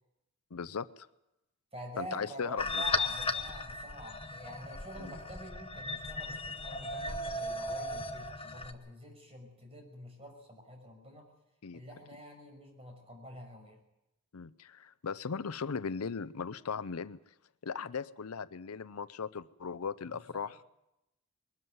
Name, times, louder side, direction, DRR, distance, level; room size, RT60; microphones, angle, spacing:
voice 1, 0.5-1.1 2.0-2.8 5.0-5.2 11.6-11.8 14.3-17.2 17.6-20.6, left 5 dB, 80° left, 16 dB, 0.6 m, -38 dB
voice 2, 1.7-11.3 11.7-13.8 20.1-20.5, equal, 30° right, 2 dB, 6.0 m, -47 dB
sound 1, 2.6-8.7, left 3 dB, 25° left, 1.0 m, -36 dB
21.0 x 13.5 x 9.5 m, 0.90 s
head